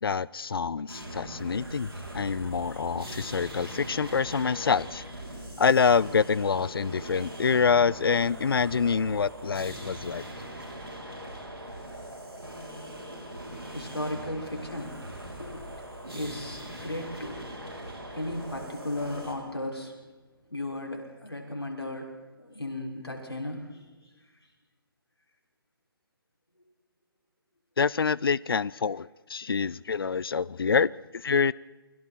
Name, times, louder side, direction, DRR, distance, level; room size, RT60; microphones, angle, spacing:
voice 1, 0.0-1.9 2.1-5.0 5.6-10.2 27.8-31.5, left 5 dB, 70° left, 0.6 m, -26 dB
sound 1, 0.9-19.3, right 1 dB, 85° right, 6.6 m, -41 dB
voice 2, 13.7-19.9 20.5-23.9, left 1 dB, 90° left, 6.2 m, -36 dB
29.0 x 23.0 x 4.5 m
figure-of-eight pair, 140°, 13 cm